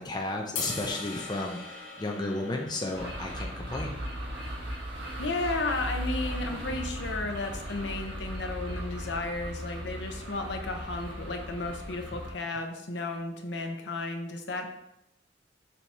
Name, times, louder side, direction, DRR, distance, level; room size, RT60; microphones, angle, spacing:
voice 1, 0.0-1.6 2.0-3.9, left 2 dB, 20° left, 0 dB, 0.5 m, -33 dB
sound 1, 0.6-6.8, left 4 dB, 85° left, 1.4 m, -42 dB
sound 2, 2.9-12.3, equal, 60° right, 1.6 m, -37 dB
voice 2, 5.2-14.7, left 2 dB, 65° left, 3 dB, 0.8 m, -33 dB
6.9 x 2.9 x 4.7 m, 0.81 s
head